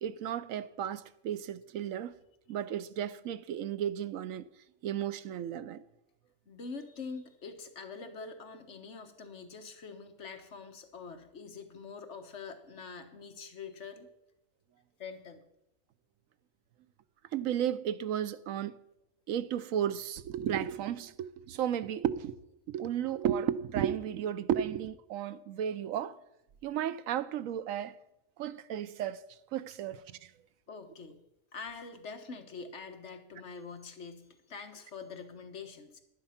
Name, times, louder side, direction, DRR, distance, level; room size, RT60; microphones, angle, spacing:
voice 1, 0.0-2.1 2.5-4.5 4.8-5.8 17.3-18.8 19.3-22.4 22.7-26.2 26.6-28.0 28.4-29.2 29.5-30.3, right 10 dB, 85° right, 1.1 m, -34 dB
voice 2, 6.5-14.1 15.0-15.4 30.7-31.2 31.5-36.0, left 4 dB, 60° left, 1.5 m, -45 dB
11.0 x 10.5 x 5.8 m
omnidirectional pair, 1.4 m